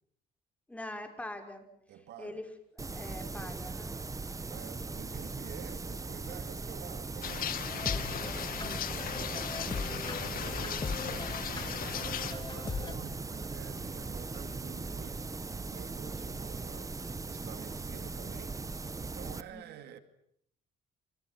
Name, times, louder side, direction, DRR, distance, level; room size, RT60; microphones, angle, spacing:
voice 1, 0.7-1.7 2.2-2.4 2.8-4.0 19.5-19.6, left 1 dB, 10° left, 5.7 m, -43 dB
voice 2, 1.9-2.4 4.4-10.0 10.3-20.0, right 10 dB, 75° right, 2.5 m, -50 dB
sound 1, 2.8-19.4, right 3 dB, 20° right, 1.5 m, -39 dB
sound 2, 7.2-12.3, left 10 dB, 60° left, 2.2 m, -37 dB
Cute Happy Background Music, 7.7-12.9, left 4 dB, 25° left, 2.2 m, -40 dB
30.0 x 26.5 x 6.1 m
cardioid pair, 110°, 17 cm